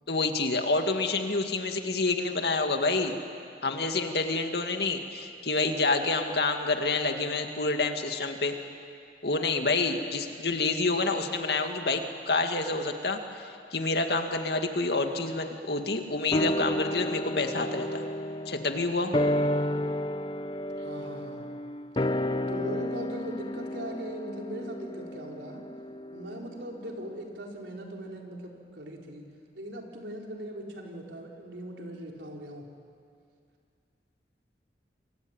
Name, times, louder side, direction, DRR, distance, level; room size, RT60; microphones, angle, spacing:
voice 1, 0.1-3.1 3.6-8.6 9.2-18.0 18.5-19.1, left 3 dB, 65° left, 5 dB, 2.2 m, -28 dB
sound 1, 16.3-26.9 27.2-27.3, left 1 dB, 30° left, 0.7 m, -32 dB
voice 2, 20.7-21.4 22.5-25.6 26.1-29.3 29.5-32.7, right 1 dB, 90° right, 0 dB, 4.2 m, -40 dB
28.5 x 23.0 x 9.0 m, 2.4 s
head